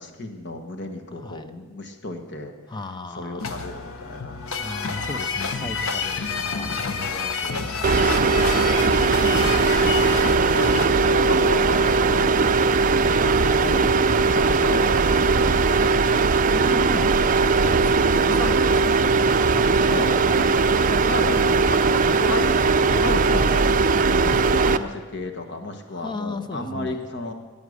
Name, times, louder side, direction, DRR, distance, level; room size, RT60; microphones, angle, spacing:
voice 1, 0.0-2.5 3.1-4.4 7.4-7.7 9.2-12.7 13.1-13.8 14.3-16.4 18.3-18.4 19.5-23.7 24.5-27.3, left 2 dB, 55° left, 5 dB, 1.4 m, -33 dB
voice 2, 1.2-1.5 2.7-3.5 4.6-9.4 16.5-17.2 17.5-18.9 22.9-23.6 24.0-24.7 25.9-27.0, left 3 dB, 20° left, 9 dB, 0.5 m, -36 dB
sound 1, 3.4-10.9, left 4 dB, 90° left, 1.0 m, -29 dB
sound 2, 7.8-24.8, right 4 dB, 40° right, 0.4 m, -19 dB
14.5 x 9.2 x 6.5 m, 1.3 s
head